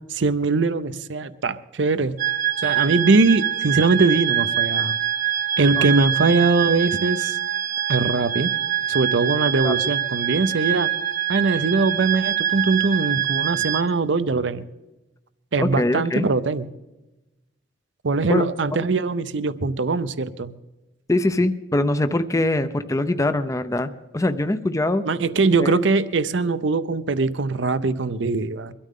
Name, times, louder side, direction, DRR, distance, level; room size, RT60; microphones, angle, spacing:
voice 1, 0.1-2.2 2.6-4.9 5.6-7.4 7.9-8.5 8.9-10.9 11.3-14.6 15.5-16.7 18.0-20.5 25.0-28.7, right 3 dB, 75° right, 0.7 m, -21 dB
sound 1, 2.2-13.8, right 10 dB, 50° right, 1.1 m, -24 dB
voice 2, 15.6-16.3 18.3-18.5 21.1-25.1 25.6-25.8, left 2 dB, 15° left, 0.5 m, -23 dB
23.0 x 13.0 x 3.7 m
head